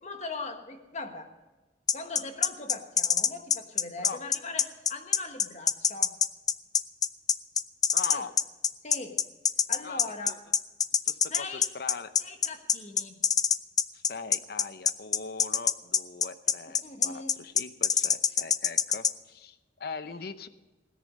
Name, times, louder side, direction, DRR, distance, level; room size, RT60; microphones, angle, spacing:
voice 1, 0.0-1.3 1.9-6.2 8.1-8.3 8.8-9.2 9.7-10.4 11.3-11.7 12.2-13.2 16.7-17.3, left 3 dB, 40° left, 6 dB, 1.4 m, -40 dB
sound 1, 1.9-19.1, left 7 dB, 20° left, 0.3 m, -24 dB
voice 2, 7.9-8.3 9.8-10.3 11.1-12.2 13.9-20.5, left 4 dB, 60° left, 12 dB, 0.7 m, -41 dB
17.0 x 10.0 x 5.3 m, 1.2 s
head